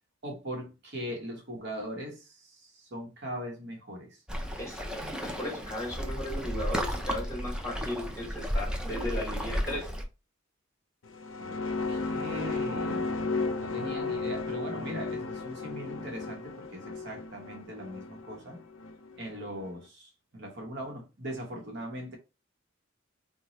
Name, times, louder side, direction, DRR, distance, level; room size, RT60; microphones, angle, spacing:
voice 1, 0.2-4.2 11.4-11.6 11.9-13.1 13.6-18.6 19.2-22.2, equal, 60° right, 0.9 m, -40 dB
Waves surf, 4.3-10.0, equal, 5° right, 0.4 m, -33 dB
voice 2, 4.6-4.9 5.2-9.9, left 1 dB, 15° left, 1.7 m, -36 dB
sound 1, 11.1-19.7, left 3 dB, 70° left, 0.5 m, -34 dB
2.9 x 2.2 x 3.9 m
head